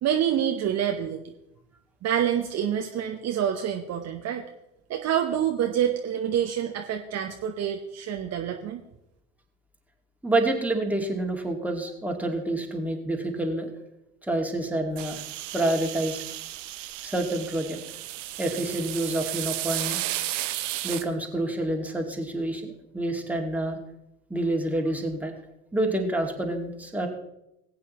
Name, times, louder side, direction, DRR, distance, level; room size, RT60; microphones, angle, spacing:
voice 1, 0.0-1.2 2.0-4.4 4.9-8.8, right 9 dB, 40° right, 3 dB, 1.0 m, -27 dB
voice 2, 10.2-13.7 14.2-15.2 15.5-16.2 17.0-17.8 18.4-20.0 20.8-23.8 24.3-25.3 25.7-27.1, right 1 dB, 5° right, 2 dB, 2.0 m, -28 dB
sound 1, 15.0-21.0, right 14 dB, 65° right, 0.8 m, -33 dB
19.5 x 8.6 x 3.0 m, 0.86 s
figure-of-eight pair, 65°, 39 cm